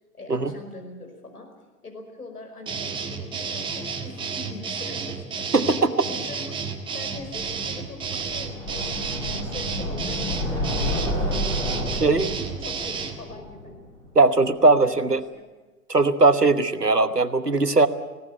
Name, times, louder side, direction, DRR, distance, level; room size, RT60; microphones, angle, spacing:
voice 1, 0.1-1.5 1.8-6.6 6.9-11.3 11.6-13.7 14.6-15.5, left 2 dB, 75° left, 3 dB, 5.4 m, -42 dB
sound 1, 2.7-13.2, right 5 dB, 10° right, 1.5 m, -31 dB
sound 2, 7.2-14.2, left 1 dB, 10° left, 5.6 m, -30 dB
voice 2, 14.1-15.2 15.9-17.9, right 3 dB, 90° right, 11 dB, 1.3 m, -19 dB
19.5 x 17.5 x 9.1 m, 1.2 s
figure-of-eight pair, 115°, 46 cm